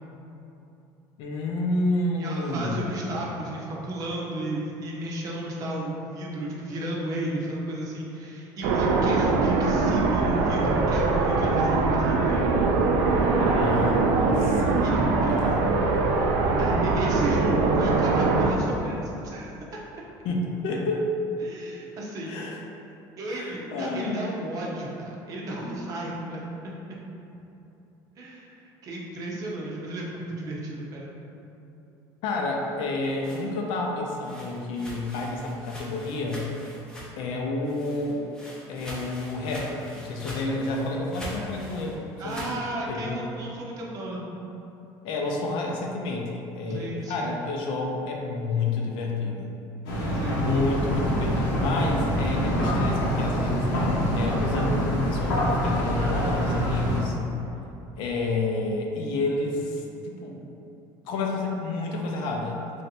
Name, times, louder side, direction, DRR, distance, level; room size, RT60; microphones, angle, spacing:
voice 1, 1.2-3.3 13.4-14.8 15.3-15.8 20.2-21.1 22.3-22.6 23.3-24.2 32.2-36.4 37.2-38.2 38.7-42.0 42.2-42.5 42.9-43.2 45.0-49.5 50.4-57.2 58.0-60.4 61.1-62.8, left 2 dB, 65° left, 0 dB, 0.5 m, -30 dB
voice 2, 2.2-12.5 14.8-15.6 16.6-19.5 21.4-22.3 23.2-27.0 28.2-31.1 42.2-44.3 46.7-47.3 50.1-50.5, right 1 dB, 40° right, -3 dB, 0.6 m, -33 dB
sound 1, 8.6-18.5, right 3 dB, 75° right, 0.4 m, -22 dB
sound 2, 32.8-37.3 37.6-42.6, equal, 10° left, 0.6 m, -43 dB
sound 3, 49.8-57.0, equal, 80° left, 0.9 m, -25 dB
3.2 x 2.7 x 4.2 m, 2.9 s
cardioid pair, 155°, 9 cm